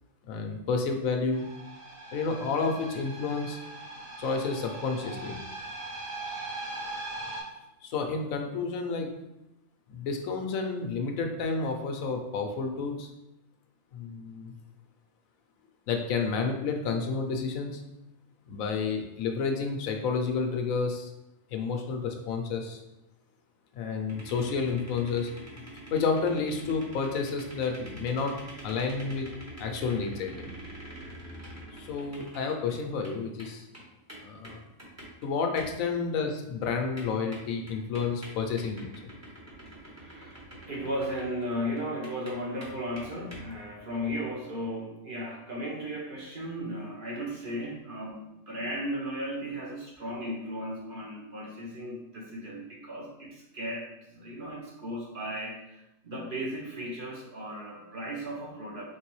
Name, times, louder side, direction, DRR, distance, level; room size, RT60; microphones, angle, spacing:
voice 1, 0.3-1.5 2.1-3.6 4.2-5.4 7.8-9.1 9.9-13.1 13.9-14.5 15.9-17.8 18.5-21.1 21.5-22.8 23.7-25.3 25.9-28.4 28.6-29.3 29.6-30.5 31.7-33.7 34.2-34.6 35.2-38.9, left 4 dB, 80° left, 3 dB, 1.0 m, -30 dB
sound 1, 1.3-7.4, right 2 dB, 70° right, 2.1 m, -40 dB
sound 2, 24.1-33.1 33.4-35.3 35.6-36.0 36.3-36.4 36.6-36.7 37.0-41.5 41.8-43.5, right 1 dB, 15° right, 0.8 m, -45 dB
voice 2, 39.8-40.4 40.7-59.0, equal, 45° right, -2 dB, 0.8 m, -36 dB
4.5 x 3.3 x 3.1 m, 0.89 s
omnidirectional pair, 1.4 m